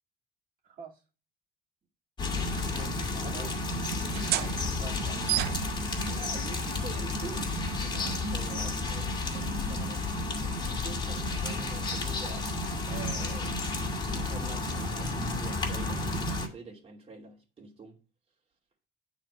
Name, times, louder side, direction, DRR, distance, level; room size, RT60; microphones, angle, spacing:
voice 1, 0.6-1.0 2.6-3.6 4.4-5.2, right 6 dB, 55° right, 2.3 m, -46 dB
sound 1, 2.2-16.5, left 2 dB, 25° left, 2.2 m, -32 dB
sound 2, 4.0-11.3, right 13 dB, 70° right, 0.6 m, -37 dB
voice 2, 6.0-12.5 12.9-13.7 14.1-18.0, right 4 dB, 35° right, 2.5 m, -46 dB
9.1 x 4.3 x 5.0 m
cardioid pair, 110°, 17 cm